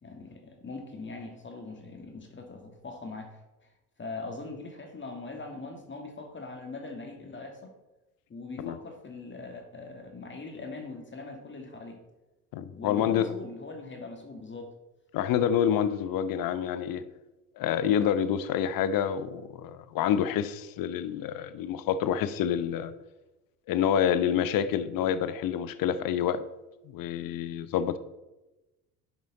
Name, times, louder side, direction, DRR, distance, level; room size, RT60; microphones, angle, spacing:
voice 1, 0.0-3.4 4.0-7.7 8.3-12.0 12.7-14.7, left 3 dB, 25° left, 3 dB, 1.9 m, -41 dB
voice 2, 12.5-13.3 15.1-17.0 17.6-22.9 23.7-26.4 26.9-28.0, left 9 dB, 45° left, 13 dB, 0.9 m, -27 dB
10.5 x 6.2 x 4.0 m, 1.0 s
hypercardioid pair, 65°, 47 cm